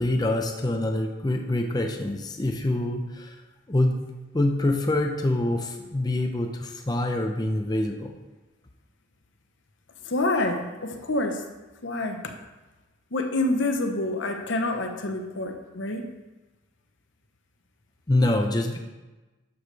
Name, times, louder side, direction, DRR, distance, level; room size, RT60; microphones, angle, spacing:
voice 1, 0.0-3.4 3.7-4.0 4.3-8.1 18.1-18.8, left 1 dB, 20° left, 3 dB, 0.5 m, -25 dB
voice 2, 10.0-11.5 11.8-12.3 13.1-16.0, left 2 dB, 70° left, 5 dB, 1.0 m, -27 dB
11.5 x 7.1 x 3.3 m, 1.2 s
head